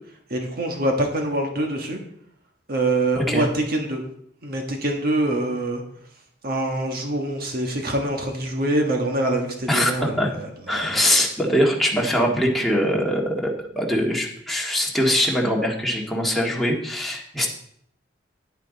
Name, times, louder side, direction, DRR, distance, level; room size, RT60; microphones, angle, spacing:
voice 1, 0.3-2.0 2.7-4.0 4.4-5.8 6.4-11.0, right 1 dB, 55° right, 2 dB, 1.5 m, -25 dB
voice 2, 3.2-3.5 9.7-10.3 10.7-17.5, equal, ahead, -2 dB, 1.8 m, -22 dB
9.6 x 9.2 x 4.1 m, 0.68 s
head